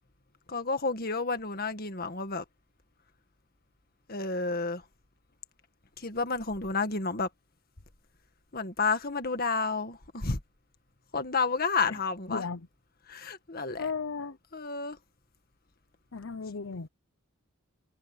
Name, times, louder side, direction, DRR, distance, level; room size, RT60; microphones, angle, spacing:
voice 1, 0.5-2.4 4.1-4.8 6.0-7.3 8.5-10.4 11.1-12.4 13.1-13.9 14.5-15.0, left 4 dB, 45° left, 1.9 m, -30 dB
voice 2, 12.3-12.7 13.8-14.4 16.1-16.9, left 5 dB, 65° left, 0.7 m, -35 dB
head